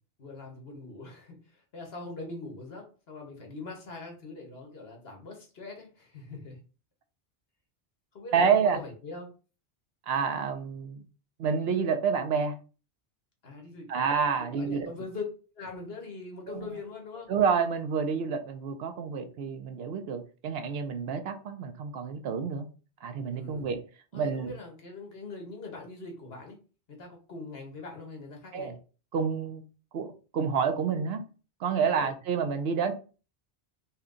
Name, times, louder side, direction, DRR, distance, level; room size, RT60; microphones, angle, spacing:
voice 1, 0.2-6.6 8.1-9.3 13.4-14.0 14.4-15.2 15.5-17.3 23.3-23.6 24.1-26.6 26.9-28.7 32.0-32.1, left 3 dB, 65° left, 1.4 m, -42 dB
voice 2, 8.3-8.8 10.1-11.0 11.4-12.5 13.9-14.9 16.5-16.7 17.3-22.7 23.0-23.8 24.1-24.5 28.5-28.7 29.1-29.6 29.9-31.2 31.6-32.9, right 6 dB, 70° right, 0.9 m, -28 dB
4.3 x 2.3 x 3.7 m
omnidirectional pair, 1.1 m